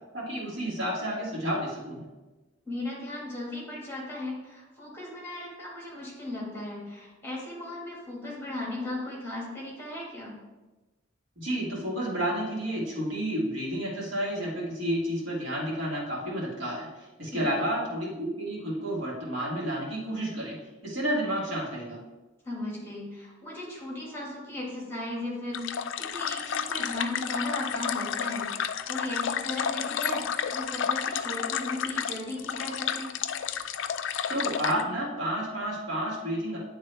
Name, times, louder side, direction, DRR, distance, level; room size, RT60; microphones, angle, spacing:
voice 1, 0.1-2.1 11.4-20.6 20.8-22.0 34.3-36.6, equal, 75° right, -5 dB, 2.0 m, -31 dB
voice 2, 2.7-10.4 17.3-17.4 22.4-33.1, left 1 dB, 15° left, -4 dB, 1.8 m, -36 dB
sound 1, 25.5-34.8, left 8 dB, 70° left, 0.3 m, -31 dB
9.7 x 3.6 x 3.4 m, 1.1 s
head